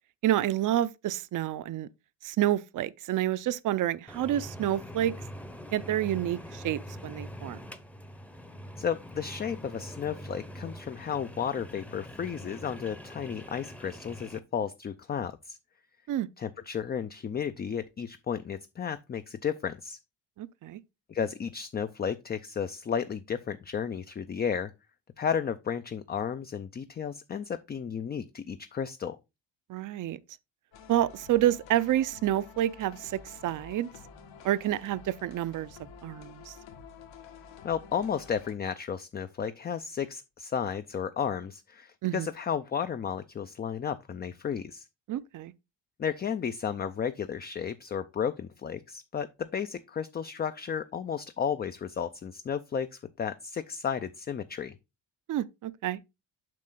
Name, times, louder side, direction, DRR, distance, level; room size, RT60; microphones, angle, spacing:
voice 1, 0.2-1.9 2.2-5.1 5.7-7.6 16.1-16.3 20.4-20.8 29.7-30.2 30.9-33.9 34.4-35.7 36.0-36.5 42.0-42.3 45.1-45.5 55.3-56.0, right 12 dB, 45° right, 0.5 m, -29 dB
sound 1, 4.1-14.4, equal, 5° left, 0.7 m, -44 dB
voice 2, 8.8-15.6 16.4-20.0 21.1-24.7 25.2-29.2 37.6-44.9 46.0-54.7, left 7 dB, 25° left, 0.4 m, -33 dB
sound 2, 30.7-38.5, left 5 dB, 75° left, 1.9 m, -50 dB
7.6 x 5.4 x 3.8 m
cardioid pair, 120°, 46 cm